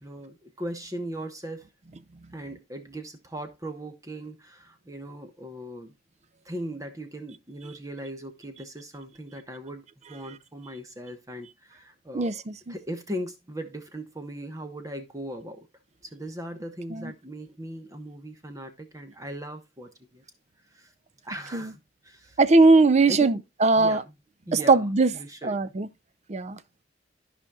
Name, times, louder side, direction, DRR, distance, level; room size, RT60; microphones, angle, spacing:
voice 1, 0.0-1.7 2.3-5.9 6.4-12.4 12.7-15.7 16.0-20.2 20.7-20.9 21.2-22.4 23.1-23.4 23.8-24.1 24.5-25.6, right 1 dB, 20° right, 1.1 m, -39 dB
voice 2, 22.4-24.0 24.5-25.1 25.4-25.9 26.3-26.8, right 3 dB, 35° right, 0.5 m, -20 dB
14.0 x 5.1 x 2.4 m
head